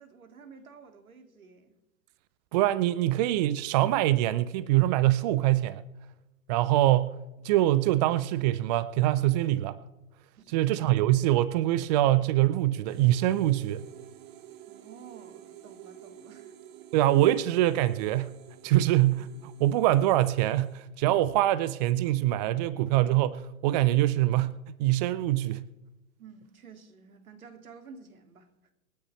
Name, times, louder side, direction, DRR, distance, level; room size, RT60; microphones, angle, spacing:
voice 1, 0.0-1.8 10.4-10.7 14.7-16.5 26.2-28.5, right 5 dB, 75° right, 2.6 m, -51 dB
voice 2, 2.5-5.8 6.5-7.1 7.4-9.8 10.5-13.8 16.9-18.3 18.6-25.6, right 14 dB, 30° right, 0.5 m, -24 dB
sound 1, 12.9-20.7, right 10 dB, 45° right, 1.6 m, -50 dB
26.5 x 9.8 x 3.3 m
hypercardioid pair, 115°, 43 cm